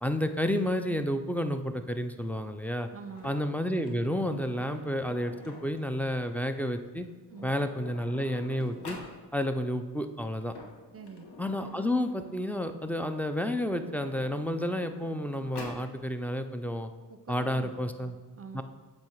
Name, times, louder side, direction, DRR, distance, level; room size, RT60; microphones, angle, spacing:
voice 1, 0.0-2.9 3.2-7.1 7.4-9.0 9.3-10.5 11.4-16.9 17.3-18.1 18.5-18.6, left 1 dB, 5° left, 8 dB, 0.3 m, -30 dB
voice 2, 2.9-3.4 7.3-7.5 10.9-11.3 17.1-18.6, right 5 dB, 35° right, 8 dB, 0.6 m, -46 dB
Sliding door, 3.1-5.9 6.9-7.0 7.3-9.1 10.3-12.8 13.6-15.9, left 3 dB, 90° left, 1.0 m, -48 dB
7.4 x 3.2 x 4.5 m, 1.4 s
cardioid pair, 70°, 39 cm